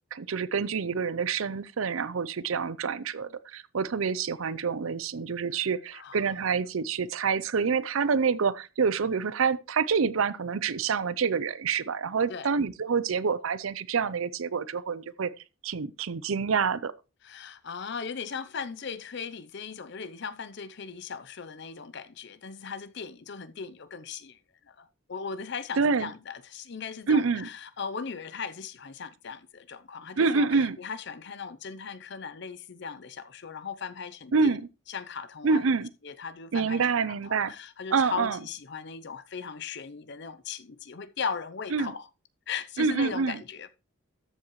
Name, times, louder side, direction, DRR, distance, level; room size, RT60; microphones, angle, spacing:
voice 1, 0.1-15.3 15.6-16.9 25.8-26.1 27.1-27.5 30.2-30.8 34.3-34.6 35.4-35.9 36.5-37.5 37.9-38.4 41.7-41.9 42.8-43.4, right 5 dB, 75° right, 0.6 m, -27 dB
voice 2, 5.9-6.2 12.3-12.5 17.2-24.4 24.7-34.6 34.9-35.6 36.0-42.1 42.5-43.7, left 6 dB, 55° left, 0.6 m, -38 dB
13.5 x 7.3 x 3.1 m
head